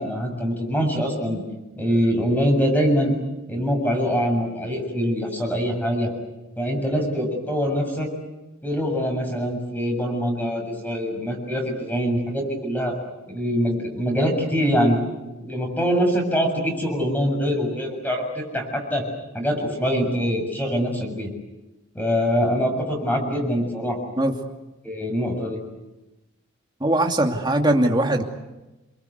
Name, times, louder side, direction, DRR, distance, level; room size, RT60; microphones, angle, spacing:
voice 1, 0.0-1.4 1.8-3.1 3.5-6.1 6.6-8.1 8.6-12.9 13.3-15.0 15.2-19.1 19.3-21.3 22.0-24.1 24.8-25.6, equal, 10° left, 2 dB, 7.1 m, -24 dB
voice 2, 26.8-28.2, right 1 dB, 20° right, 3 dB, 2.6 m, -20 dB
28.0 x 24.0 x 8.2 m, 1.0 s
head